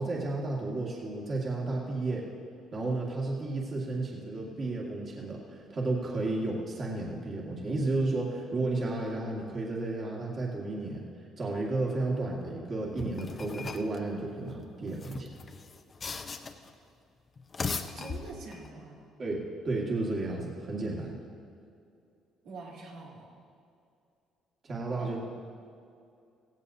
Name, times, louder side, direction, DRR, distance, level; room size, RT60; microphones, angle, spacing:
voice 1, 0.0-2.2 2.7-11.0 11.4-15.3 19.2-21.1 24.6-25.2, right 2 dB, 40° right, -3 dB, 2.0 m, -32 dB
sound 1, 13.0-14.0 14.9-16.7 17.4-18.7, left 4 dB, 30° left, 0.7 m, -38 dB
voice 2, 17.8-19.1 22.4-23.3 25.0-25.1, right 3 dB, 85° right, -5 dB, 3.3 m, -45 dB
16.5 x 16.0 x 2.8 m, 2.5 s
cardioid pair, 115°, 0 cm